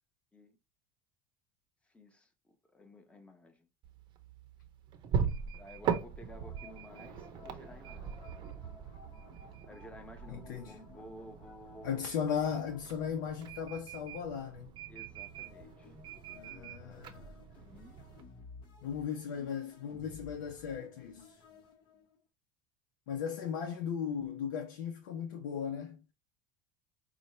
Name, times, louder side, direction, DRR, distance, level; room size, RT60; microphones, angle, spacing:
voice 1, 1.8-3.7 5.6-8.2 9.6-12.1 14.9-17.3 17.6-18.1, left 1 dB, 10° left, 1.0 m, -54 dB
sound 1, 3.8-18.2, right 7 dB, 45° right, 0.7 m, -41 dB
sound 2, 6.1-14.3 14.8-22.2, left 4 dB, 50° left, 1.2 m, -57 dB
voice 2, 10.3-10.8 11.8-14.7 16.3-17.4 18.8-21.4 23.1-26.0, left 7 dB, 80° left, 0.7 m, -37 dB
5.3 x 2.3 x 3.1 m
supercardioid pair, 105°, 11 cm